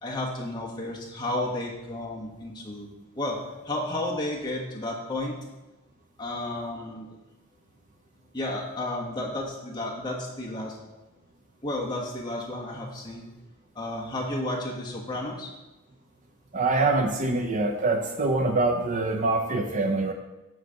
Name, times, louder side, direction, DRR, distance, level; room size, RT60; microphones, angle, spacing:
voice 1, 0.0-2.9 3.1-3.4 3.6-5.4 6.2-7.1 8.3-10.8 11.6-13.3 13.7-15.5, left 1 dB, 20° left, -3 dB, 1.4 m, -32 dB
voice 2, 16.5-20.1, right 3 dB, 35° right, 3 dB, 0.5 m, -24 dB
9.2 x 3.2 x 6.5 m, 1.1 s
head